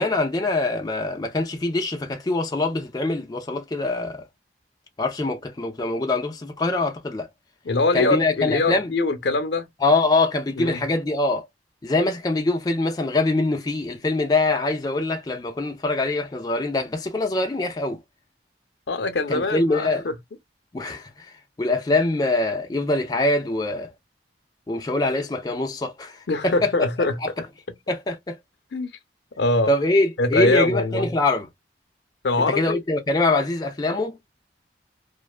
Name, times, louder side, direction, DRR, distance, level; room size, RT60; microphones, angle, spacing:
voice 1, 0.0-4.2 5.0-7.3 7.9-8.9 9.8-11.5 11.8-18.0 19.3-20.1 20.7-23.9 24.7-26.7 27.2-27.3 27.9-28.4 29.7-31.5 32.5-34.2, left 2 dB, 20° left, 0.4 m, -23 dB
voice 2, 7.6-9.7 10.6-10.9 18.9-20.1 26.3-27.5 28.7-28.9 29.4-29.7 30.2-31.1 32.2-32.8, left 2 dB, 70° left, 0.6 m, -23 dB
2.5 x 2.2 x 2.3 m
head